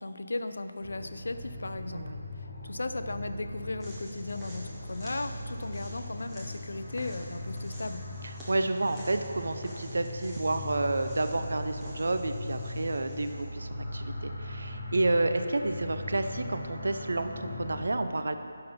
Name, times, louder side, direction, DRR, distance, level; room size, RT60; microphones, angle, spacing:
voice 1, 0.0-2.1 2.6-8.0, left 2 dB, 65° left, 10 dB, 0.4 m, -36 dB
sound 1, 0.8-17.8, left 2 dB, 20° left, 1.2 m, -40 dB
voice 2, 1.9-2.2 8.5-18.3, right 2 dB, 60° right, 8 dB, 0.4 m, -30 dB
sound 2, 3.8-13.5, equal, 5° right, 0.6 m, -50 dB
5.6 x 5.5 x 5.5 m, 2.4 s
figure-of-eight pair, 180°, 0 cm